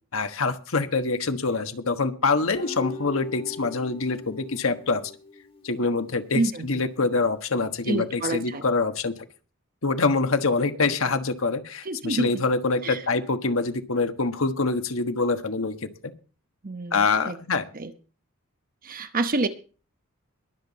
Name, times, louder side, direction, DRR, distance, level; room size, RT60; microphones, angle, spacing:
voice 1, 0.1-5.0 5.6-9.1 9.8-16.1 16.9-17.6, left 3 dB, 80° left, 8 dB, 1.4 m, -25 dB
Guitar, 2.5-5.8, left 2 dB, 30° left, 1.9 m, -38 dB
voice 2, 6.3-6.8 7.9-8.6 11.8-12.3 12.8-13.0 16.6-17.0 17.3-17.4 17.7-17.9 18.8-19.5, right 2 dB, 45° right, 9 dB, 1.0 m, -27 dB
22.0 x 7.4 x 4.1 m, 0.36 s
head